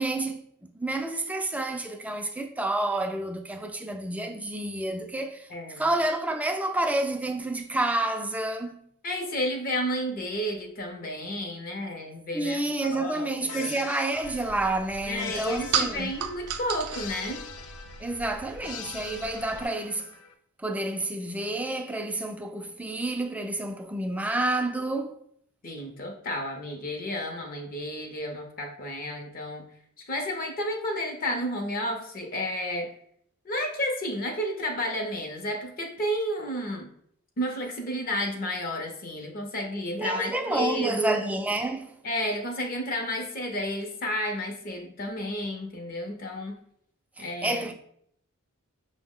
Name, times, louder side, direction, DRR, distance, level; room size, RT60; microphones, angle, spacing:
voice 1, 0.0-8.9 12.3-16.1 18.0-20.1 20.6-25.1 40.0-42.0 47.2-47.7, right 2 dB, 5° right, 0.3 m, -29 dB
voice 2, 5.5-5.9 9.0-12.6 12.9-13.7 15.1-17.4 25.6-29.6 30.1-32.9 33.5-36.9 37.4-41.2 42.0-46.6 47.2-47.6, equal, 40° left, 0.6 m, -31 dB
sound 1, 13.5-20.3, left 6 dB, 85° left, 0.4 m, -43 dB
sound 2, 14.2-19.7, right 7 dB, 80° right, 0.4 m, -35 dB
5.4 x 2.0 x 3.6 m
head